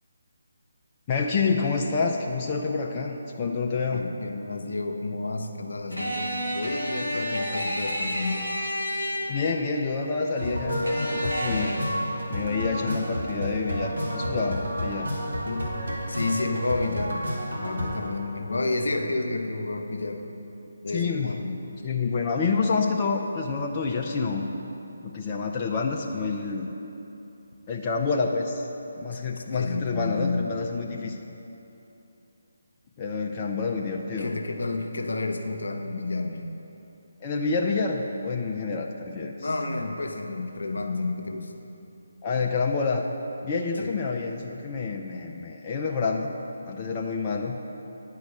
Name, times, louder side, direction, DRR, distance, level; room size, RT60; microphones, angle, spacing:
voice 1, 1.1-4.1 9.3-11.8 12.3-15.1 20.9-21.3 21.8-24.5 25.0-26.7 27.7-28.7 29.0-31.2 33.0-34.3 37.2-39.5 42.2-43.0 43.4-46.3 46.6-47.6, left 4 dB, 25° left, 0 dB, 0.5 m, -28 dB
voice 2, 3.9-8.5 15.4-15.7 16.1-17.3 17.5-20.2 20.8-21.6 29.4-30.5 30.9-31.2 34.1-36.4 39.4-41.5 43.8-44.0, left 3 dB, 65° left, 4 dB, 0.7 m, -30 dB
sound 1, 5.9-9.6 10.9-11.8, equal, 85° right, 1.7 m, -30 dB
sound 2, 10.4-18.1, equal, 70° right, 1.9 m, -30 dB
10.0 x 4.7 x 6.5 m, 2.9 s
figure-of-eight pair, 150°, 0 cm